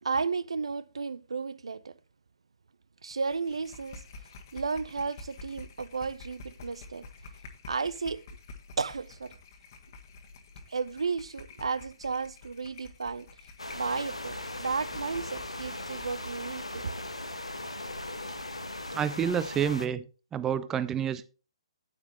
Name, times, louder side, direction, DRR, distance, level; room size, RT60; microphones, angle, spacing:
voice 1, 0.0-2.0 3.0-4.0 4.5-7.1 7.6-8.2 8.8-9.3 10.7-13.3 13.7-16.9, right 4 dB, 65° right, 0.5 m, -33 dB
sound 1, 3.1-16.5, left 3 dB, 40° left, 1.4 m, -49 dB
sound 2, 13.6-19.9, left 1 dB, 85° left, 1.1 m, -38 dB
voice 2, 18.9-20.1 20.3-21.3, right 8 dB, 15° right, 0.4 m, -28 dB
9.7 x 9.2 x 3.0 m
figure-of-eight pair, 125°, 3 cm